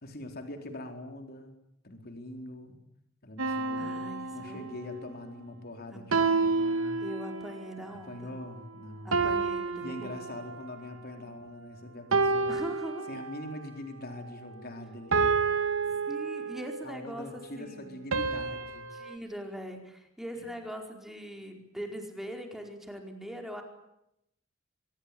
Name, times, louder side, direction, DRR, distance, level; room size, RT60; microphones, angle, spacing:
voice 1, 0.0-1.6 1.8-2.8 3.2-4.0 4.3-7.0 7.9-9.2 9.8-12.6 13.1-15.4 16.8-18.9 20.4-20.5, left 1 dB, 50° left, 5 dB, 4.2 m, -43 dB
sound 1, 3.4-5.0 6.1-7.6 9.1-10.8 12.1-13.6 15.1-16.9 18.1-19.2, right 4 dB, 90° right, 2.7 m, -29 dB
voice 2, 3.8-4.7 5.9-6.5 7.0-8.3 9.0-10.2 12.5-13.1 15.9-18.0 18.9-23.6, equal, ahead, 3 dB, 4.7 m, -41 dB
25.0 x 22.5 x 8.6 m, 0.81 s
head